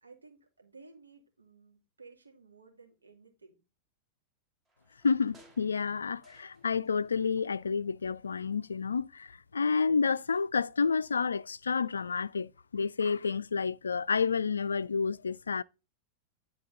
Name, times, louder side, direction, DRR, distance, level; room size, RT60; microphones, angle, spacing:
voice 1, 0.0-3.6, right 4 dB, 80° right, 2.3 m, -56 dB
sound 1, 4.7-7.1 7.4-8.4 8.8-8.9, right 1 dB, 20° right, 2.0 m, -63 dB
voice 2, 5.0-15.6, left 5 dB, 75° left, 0.3 m, -30 dB
10.5 x 4.4 x 3.8 m
figure-of-eight pair, 90°, 0 cm